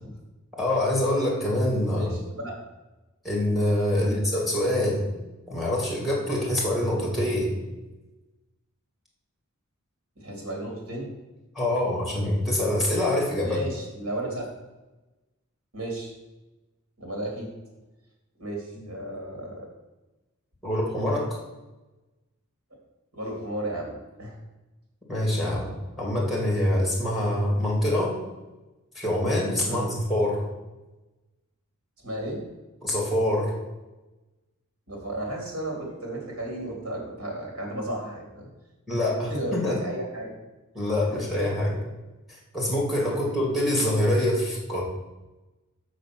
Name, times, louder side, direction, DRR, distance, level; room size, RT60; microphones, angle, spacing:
voice 1, 0.6-2.1 3.2-5.0 5.5-7.6 11.5-13.6 20.6-21.4 25.1-28.2 29.0-30.4 32.8-33.5 38.9-39.8 40.7-41.7 42.5-44.8, left 1 dB, ahead, -2 dB, 2.5 m, -25 dB
voice 2, 1.9-2.5 4.0-4.2 10.2-11.1 13.4-14.5 15.7-16.1 17.0-17.5 18.4-19.7 23.1-23.9 24.2-24.4 29.6-29.9 32.0-32.4 34.9-38.5 38.9-39.0 39.3-40.3 41.1-41.6, right 1 dB, 80° right, -1 dB, 3.1 m, -34 dB
6.4 x 6.2 x 6.1 m, 1.1 s
head